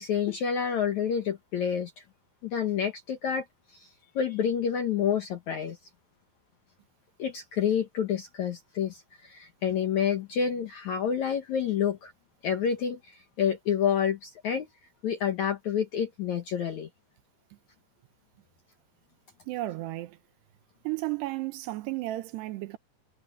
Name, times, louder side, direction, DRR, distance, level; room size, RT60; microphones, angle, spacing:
voice 1, 0.0-2.0 2.4-3.5 3.7-5.8 7.2-12.1 12.4-14.7 15.0-16.9, left 8 dB, 75° left, 1.7 m, -28 dB
voice 2, 19.5-20.2 20.8-22.8, right 17 dB, 75° right, 2.8 m, -33 dB
omnidirectional pair, 5.2 m